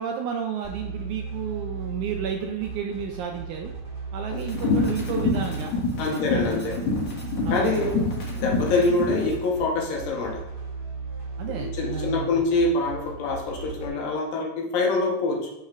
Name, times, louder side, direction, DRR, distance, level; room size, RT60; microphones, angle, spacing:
voice 1, 0.0-3.7 4.1-5.7 6.1-6.7 7.5-7.9 11.4-12.4, right 7 dB, 85° right, 3 dB, 1.7 m, -32 dB
sound 1, 0.6-13.9, right 4 dB, 15° right, 1.4 m, -35 dB
sound 2, 4.4-9.3, left 4 dB, 60° left, 2.8 m, -27 dB
voice 2, 6.0-6.8 7.5-8.0 8.3-10.4 11.6-15.5, left 3 dB, 80° left, -1 dB, 2.8 m, -25 dB
8.5 x 6.5 x 2.5 m, 0.88 s
omnidirectional pair, 4.1 m